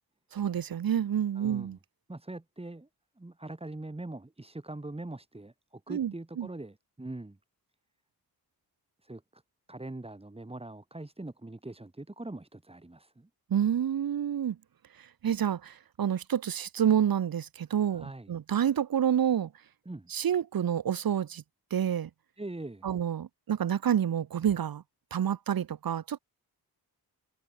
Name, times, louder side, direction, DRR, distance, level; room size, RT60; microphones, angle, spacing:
voice 1, 0.3-1.8 5.9-6.5 13.5-14.6 15.0-19.5 20.1-21.4 21.7-22.1 22.8-24.8 25.1-26.2, right 9 dB, 65° right, 1.1 m, -28 dB
voice 2, 1.4-1.8 2.1-2.9 3.2-7.4 9.0-9.4 9.7-13.3 17.9-18.3 19.9-20.1 22.4-22.9, right 2 dB, 15° right, 7.2 m, -42 dB
wide cardioid pair, 160°, 38 cm